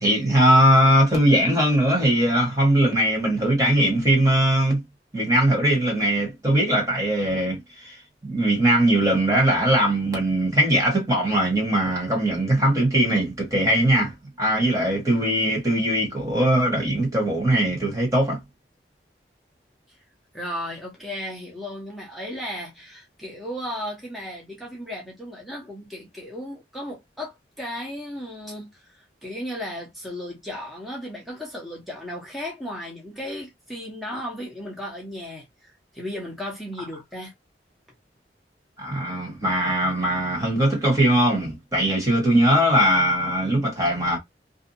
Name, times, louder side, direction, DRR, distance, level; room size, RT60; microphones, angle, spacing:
voice 1, 0.0-4.8 5.1-8.0 8.2-14.1 14.4-18.4 38.8-44.2, right 1 dB, 20° right, 1.2 m, -20 dB
voice 2, 20.3-37.3, left 1 dB, ahead, 0.7 m, -35 dB
2.6 x 2.3 x 2.6 m
head